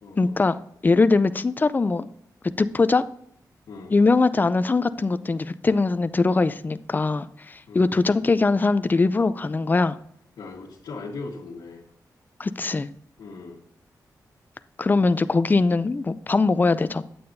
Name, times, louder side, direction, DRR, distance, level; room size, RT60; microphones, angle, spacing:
voice 1, 0.2-2.1 2.6-3.0 3.9-10.0 12.4-12.9 14.8-17.0, left 3 dB, 25° left, 13 dB, 0.4 m, -21 dB
voice 2, 7.7-8.1 10.4-11.8 13.2-13.6, left 3 dB, 90° left, -5 dB, 1.4 m, -39 dB
8.6 x 8.6 x 2.6 m, 0.69 s
wide cardioid pair, 100°, 7 cm